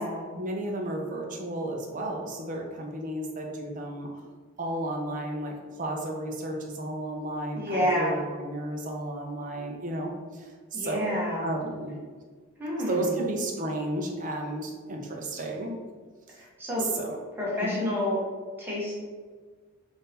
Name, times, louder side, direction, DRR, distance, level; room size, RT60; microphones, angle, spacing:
voice 1, 0.3-4.1 4.6-11.9 12.9-15.7 16.3-16.4 16.8-17.2 17.6-17.9, right 1 dB, 35° right, 1 dB, 0.6 m, -33 dB
voice 2, 7.5-8.2 10.7-11.5 12.6-13.1 16.4-16.9 17.4-18.2 18.6-19.0, left 1 dB, 10° right, -7 dB, 0.9 m, -29 dB
3.7 x 2.7 x 4.0 m, 1.5 s
head